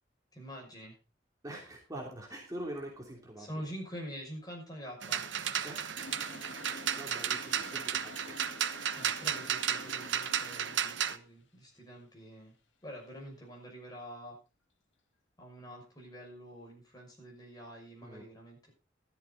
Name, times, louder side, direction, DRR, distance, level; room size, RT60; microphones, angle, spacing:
voice 1, 0.3-1.0 3.4-5.2 9.0-12.5 12.8-14.4 15.4-18.7, equal, 20° left, -1 dB, 6.2 m, -46 dB
voice 2, 1.4-3.6 5.6-6.3 6.7-8.4 18.0-18.3, right 1 dB, 20° right, -1 dB, 3.0 m, -44 dB
sound 1, 5.0-11.2, right 8 dB, 90° right, 1.1 m, -34 dB
Toilet flush, 6.0-11.2, left 2 dB, 85° left, 1.6 m, -49 dB
13.5 x 12.5 x 3.9 m, 0.32 s
head